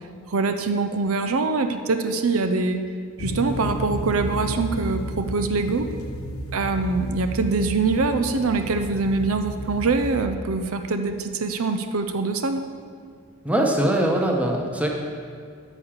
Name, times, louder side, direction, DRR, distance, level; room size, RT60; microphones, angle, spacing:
voice 1, 0.3-2.8 3.2-5.9 6.5-12.7, right 3 dB, 70° right, 8 dB, 0.6 m, -24 dB
sound 1, 3.2-10.2, equal, 75° left, 1.0 m, -32 dB
voice 2, 13.4-14.9, right 1 dB, 5° right, 0 dB, 1.1 m, -22 dB
9.8 x 6.3 x 7.3 m, 2.2 s
head